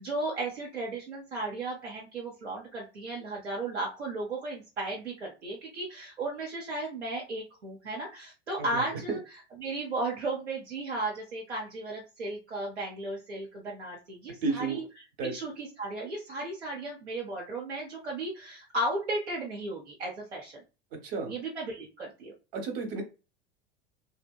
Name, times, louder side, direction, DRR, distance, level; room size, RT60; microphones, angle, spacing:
voice 1, 0.0-9.2 9.6-14.8 15.2-20.6 21.2-22.3, right 2 dB, 85° right, -4 dB, 0.7 m, -35 dB
voice 2, 8.6-9.2 14.4-14.8 15.2-15.3 21.0-21.3 22.5-23.0, right 4 dB, 60° right, 3 dB, 0.9 m, -32 dB
2.7 x 2.0 x 2.2 m, 0.30 s
figure-of-eight pair, 75°, 33 cm